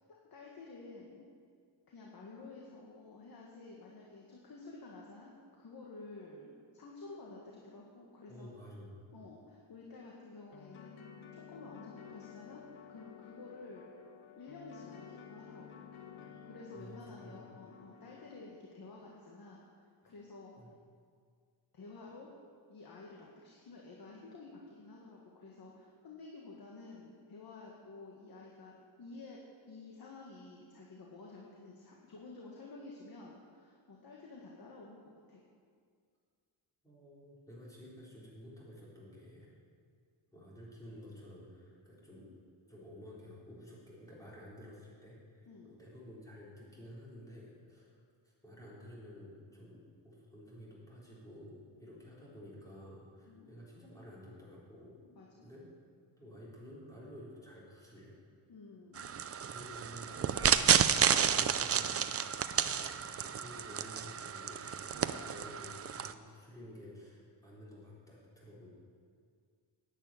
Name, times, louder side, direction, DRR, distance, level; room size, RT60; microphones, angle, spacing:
voice 1, 0.3-1.3 1.9-8.5 9.1-10.9 11.3-13.9 14.4-15.9 16.4-20.5 21.7-22.3 22.7-35.4 45.4-45.8 53.3-53.5 55.1-55.5 58.5-59.1, left 3 dB, 50° left, -2 dB, 1.7 m, -51 dB
voice 2, 8.3-9.0 16.2-17.5 20.0-20.1 20.6-20.7 36.8-39.5 40.3-42.3 42.7-48.0 48.2-55.0 55.4-55.7 56.2-58.1 59.5-64.9 65.1-68.7, equal, 5° left, -7 dB, 4.1 m, -52 dB
sound 1, 10.5-18.4, left 7 dB, 90° left, 1.2 m, -53 dB
sound 2, 59.0-66.1, right 8 dB, 35° right, 0.4 m, -31 dB
10.5 x 9.2 x 9.0 m, 2.1 s
wide cardioid pair, 160°, 48 cm